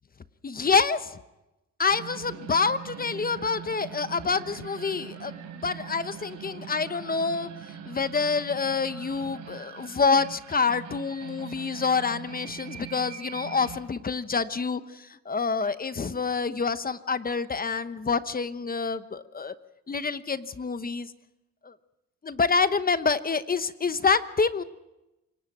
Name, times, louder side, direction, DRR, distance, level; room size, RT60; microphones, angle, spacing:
voice 1, 0.4-1.2 1.8-5.3 5.6-7.5 7.9-19.5 19.9-21.1 21.6-21.7 22.2-24.6, left 5 dB, 30° left, 12 dB, 1.0 m, -27 dB
sound 1, 1.9-13.8, right 8 dB, 85° right, 3.8 m, -42 dB
27.5 x 18.5 x 6.1 m, 0.95 s
cardioid pair, 90°, 30 cm